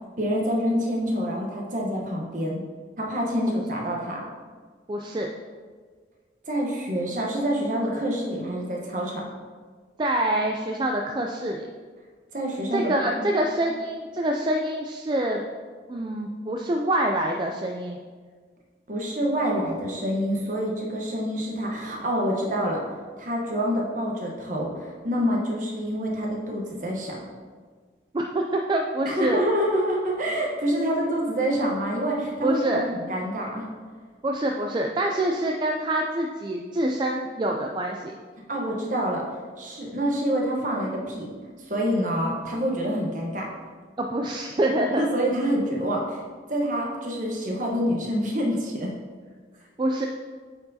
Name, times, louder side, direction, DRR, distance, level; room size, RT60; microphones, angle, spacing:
voice 1, 0.2-2.6 3.0-4.2 6.5-9.2 12.3-13.3 18.9-22.8 23.2-27.2 29.0-32.6 32.9-33.7 38.5-41.3 41.7-43.5 44.9-46.2 46.5-48.9, equal, 45° right, -1 dB, 1.1 m, -27 dB
voice 2, 4.9-5.3 10.0-11.7 12.7-15.4 15.9-18.0 28.1-29.4 32.4-32.9 34.2-38.1 44.0-45.1 49.8-50.1, right 1 dB, 25° right, 1 dB, 0.3 m, -26 dB
8.8 x 4.5 x 2.8 m, 1.5 s
head